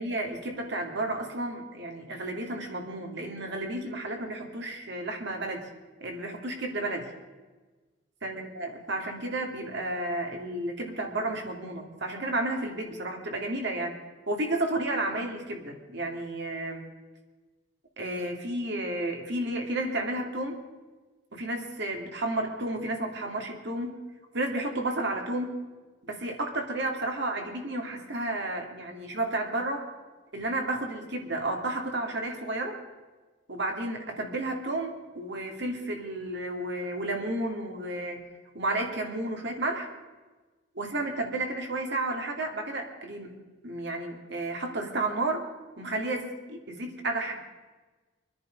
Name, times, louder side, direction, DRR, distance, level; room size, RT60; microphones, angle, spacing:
voice 1, 0.0-5.7 6.0-7.1 8.2-14.0 14.3-16.9 18.0-20.6 21.3-24.0 24.3-25.6 26.0-29.9 30.3-32.8 33.5-38.2 38.5-39.9 40.7-45.5 45.8-47.4, right 2 dB, 65° right, 3 dB, 2.6 m, -32 dB
25.0 x 10.5 x 5.3 m, 1.3 s
head